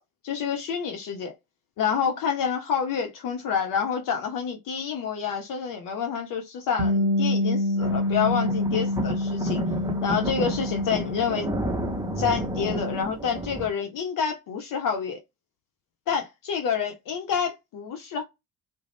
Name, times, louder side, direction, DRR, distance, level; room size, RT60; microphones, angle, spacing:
voice 1, 0.2-1.3 1.8-9.6 10.0-11.5 12.2-15.2 16.1-18.2, left 7 dB, 50° left, 0.6 m, -28 dB
Bass guitar, 6.8-13.0, left 1 dB, 75° right, 0.6 m, -27 dB
sound 1, 7.8-13.7, right 1 dB, 10° right, 0.7 m, -32 dB
2.4 x 2.0 x 3.2 m
hypercardioid pair, 55°, 44 cm